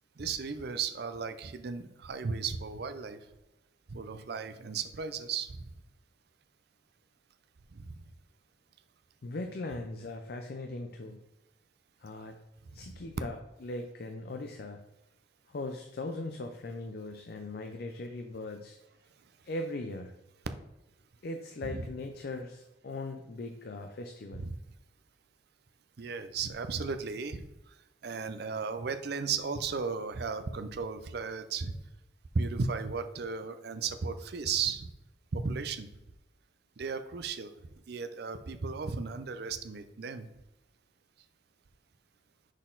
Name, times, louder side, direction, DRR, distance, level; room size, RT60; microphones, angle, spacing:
voice 1, 0.2-3.2 3.9-5.7 7.7-8.0 21.6-21.9 24.4-24.6 26.0-27.5 28.0-31.8 32.3-34.9 35.3-35.9 36.8-37.5 37.9-40.3, right 5 dB, 60° right, 9 dB, 0.5 m, -35 dB
voice 2, 9.2-11.2 12.0-12.4 12.7-14.8 15.5-18.8 19.4-20.1 21.2-24.4, left 2 dB, 55° left, 5 dB, 0.5 m, -39 dB
6.3 x 4.1 x 3.8 m, 0.96 s
head